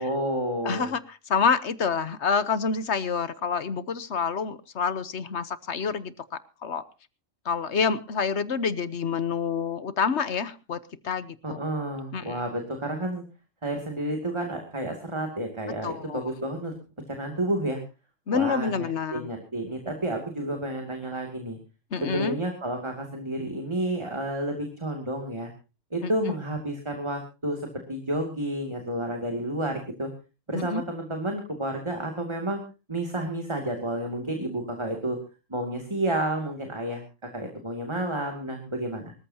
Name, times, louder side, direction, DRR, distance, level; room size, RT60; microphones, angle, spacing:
voice 1, 0.0-0.9 11.4-13.2 13.6-16.7 17.1-17.8 18.3-18.9 19.1-21.6 22.0-25.5 25.9-30.1 30.5-32.6 32.9-35.2 35.5-39.1, right 1 dB, 20° right, 3 dB, 2.6 m, -30 dB
voice 2, 0.6-6.2 6.6-6.8 7.4-11.6 12.1-12.4 15.8-16.2 18.3-19.3 21.9-22.3 26.0-26.1 30.5-30.8, left 6 dB, 60° left, 14 dB, 1.2 m, -27 dB
24.5 x 14.0 x 2.8 m, 0.32 s
omnidirectional pair, 1.3 m